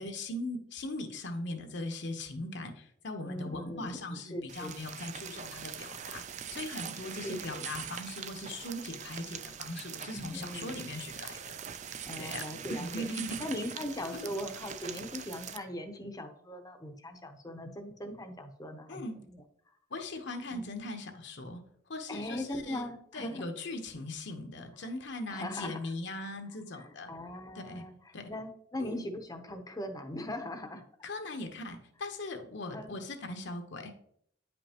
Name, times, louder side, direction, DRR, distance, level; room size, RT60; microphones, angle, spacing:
voice 1, 0.0-6.2 6.5-11.6 12.2-13.4 14.1-14.3 18.9-19.2 19.9-21.6 21.9-27.1 27.5-27.8 28.1-28.3 28.8-29.0 31.0-34.0, left 2 dB, 65° left, 5 dB, 1.0 m, -40 dB
voice 2, 3.2-4.8 7.2-7.7 10.1-10.9 12.1-13.1 13.4-19.0 19.3-19.7 20.5-20.7 22.1-23.5 25.3-25.8 26.7-30.8 32.7-33.0, left 1 dB, 20° left, 6 dB, 0.7 m, -40 dB
sound 1, 4.5-15.6, right 8 dB, 40° right, 0.4 m, -43 dB
9.5 x 5.3 x 2.9 m, 0.68 s
head